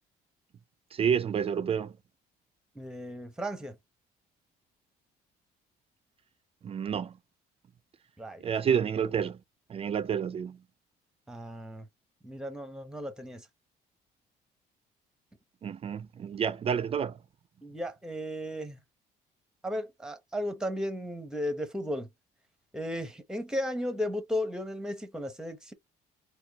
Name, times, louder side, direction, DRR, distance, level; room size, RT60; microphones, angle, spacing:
voice 1, 0.9-1.9 6.6-7.2 8.4-9.4 9.7-10.6 15.6-17.2, right 7 dB, 35° right, 0.4 m, -29 dB
voice 2, 2.7-3.8 8.2-8.5 11.3-11.9 12.2-13.5 17.6-18.8 19.6-22.1 22.7-25.7, equal, 5° right, 0.9 m, -35 dB
4.3 x 2.3 x 2.8 m
cardioid pair, 110°, 17 cm